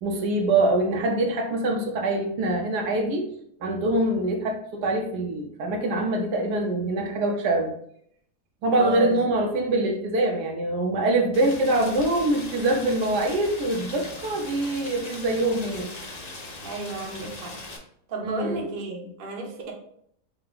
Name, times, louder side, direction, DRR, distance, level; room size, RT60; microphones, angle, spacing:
voice 1, 0.0-3.3 3.6-7.7 8.6-15.9 18.2-18.7, right 2 dB, 80° right, 2 dB, 1.3 m, -24 dB
voice 2, 8.7-9.5 16.6-17.6 18.1-19.7, right 3 dB, 45° right, 0 dB, 0.8 m, -33 dB
Rain, 11.3-17.8, left 2 dB, 45° left, 0.5 m, -39 dB
5.6 x 2.2 x 3.9 m, 0.68 s
omnidirectional pair, 1.7 m